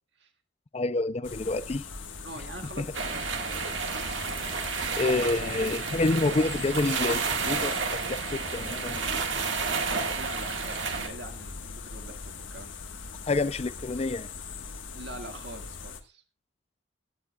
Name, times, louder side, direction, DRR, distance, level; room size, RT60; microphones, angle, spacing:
voice 1, 0.7-1.8 2.8-2.9 5.0-9.0 13.3-14.3, left 2 dB, 35° left, 0.4 m, -28 dB
sound 1, 1.2-16.0, left 4 dB, 85° left, 1.4 m, -41 dB
voice 2, 2.2-3.6 9.2-12.7 14.9-16.2, right 2 dB, 65° right, 1.9 m, -44 dB
sveaborg-hav-norm, 2.9-11.1, right 5 dB, 80° right, 1.7 m, -31 dB
17.0 x 10.5 x 2.3 m
head